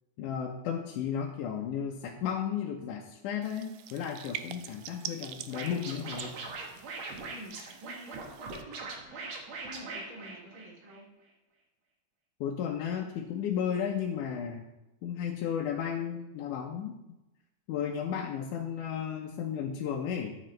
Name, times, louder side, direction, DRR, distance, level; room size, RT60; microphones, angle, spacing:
voice 1, 0.2-6.4 12.4-14.6 15.0-16.9 17.7-20.4, left 8 dB, 80° left, 0 dB, 2.3 m, -34 dB
sound 1, 3.4-8.6, right 11 dB, 80° right, 2.0 m, -45 dB
Scratching (performance technique), 5.5-11.0, right 3 dB, 60° right, 2.6 m, -41 dB
voice 2, 7.3-8.2 8.6-11.0, equal, 30° right, -3 dB, 2.3 m, -49 dB
13.0 x 7.7 x 3.2 m, 0.99 s
omnidirectional pair, 3.6 m